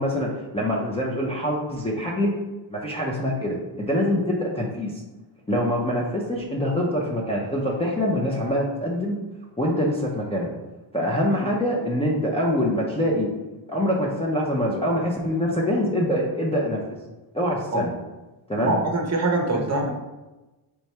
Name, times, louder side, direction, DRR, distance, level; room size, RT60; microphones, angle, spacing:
voice 1, 0.0-2.3 2.7-5.0 5.5-9.2 9.6-10.5 10.9-13.3 13.7-17.0 17.3-17.9 18.5-18.8 19.5-19.6, equal, 15° left, -5 dB, 0.5 m, -24 dB
voice 2, 18.6-19.9, right 2 dB, 35° right, 2 dB, 0.7 m, -24 dB
3.4 x 3.0 x 4.2 m, 1.1 s
cardioid pair, 120°, 49 cm